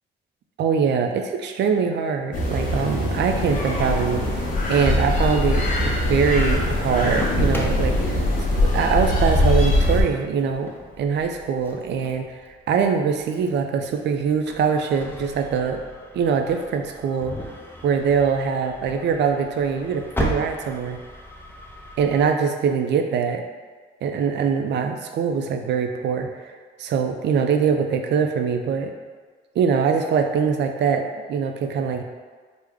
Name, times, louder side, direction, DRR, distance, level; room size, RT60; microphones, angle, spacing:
voice 1, 0.6-4.4 4.7-10.7 11.0-12.3 12.7-15.8 16.1-17.4 17.8-21.0 22.0-23.4 24.0-26.5 26.8-28.9 29.6-32.0, right 6 dB, 60° right, 5 dB, 0.4 m, -23 dB
sound 1, 2.3-10.0, left 1 dB, 40° left, 0.7 m, -22 dB
Engine starting, 5.3-22.3, equal, 10° left, 0.5 m, -38 dB
3.4 x 2.1 x 3.5 m, 1.5 s
cardioid pair, 90°, 20 cm